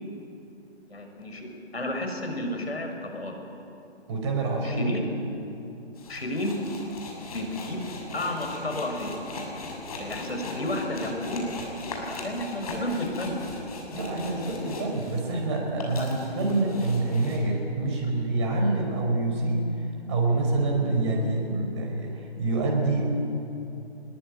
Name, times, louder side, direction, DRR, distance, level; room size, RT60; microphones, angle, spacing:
voice 1, 0.9-1.5 1.7-3.3 4.6-5.0 6.1-6.6 7.3-7.8 8.1-9.2 9.9-11.4 12.1-13.4 13.7-14.7 16.0-16.2, left 1 dB, 70° left, 4 dB, 6.6 m, -32 dB
voice 2, 4.1-5.0 13.9-23.0, right 2 dB, 25° right, 1 dB, 5.2 m, -26 dB
sound 1, 6.0-15.4 15.7-17.4, left 2 dB, 35° left, 6.3 m, -38 dB
24.5 x 21.5 x 9.5 m, 2.8 s
figure-of-eight pair, 150°, 33 cm